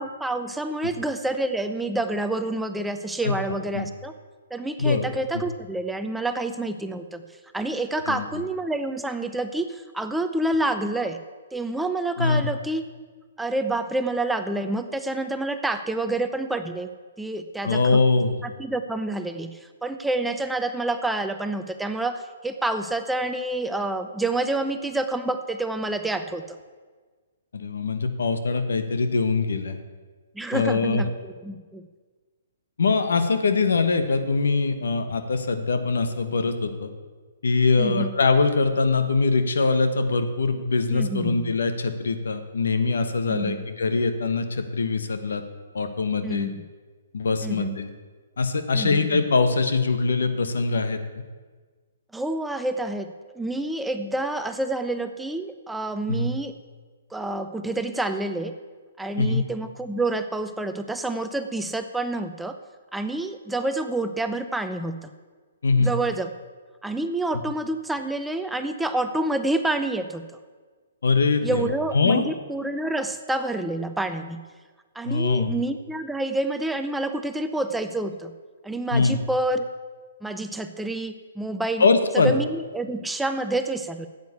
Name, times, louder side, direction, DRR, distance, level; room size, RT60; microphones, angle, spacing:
voice 1, 0.0-4.1 4.5-7.2 7.5-11.2 11.5-12.8 13.4-16.9 17.2-18.0 18.4-26.6 30.3-31.8 37.8-38.1 40.9-41.5 43.3-43.6 46.2-46.6 47.4-47.8 48.7-49.2 52.1-56.5 57.1-58.5 59.0-62.5 62.9-65.1 65.8-66.3 66.8-70.2 71.4-74.4 74.9-78.3 78.6-79.7 80.2-81.9 82.1-84.1, right 2 dB, 5° right, 8 dB, 0.6 m, -28 dB
voice 2, 17.6-18.4 27.5-29.8 30.5-31.0 32.8-36.9 37.4-45.4 45.7-46.5 47.1-47.9 48.4-51.0 56.1-56.3 59.2-59.4 65.6-65.9 71.0-72.2 75.0-75.5 78.9-79.2 81.8-82.3, left 4 dB, 80° left, 9 dB, 1.2 m, -22 dB
9.3 x 8.1 x 8.2 m, 1.4 s
hypercardioid pair, 135°, 0 cm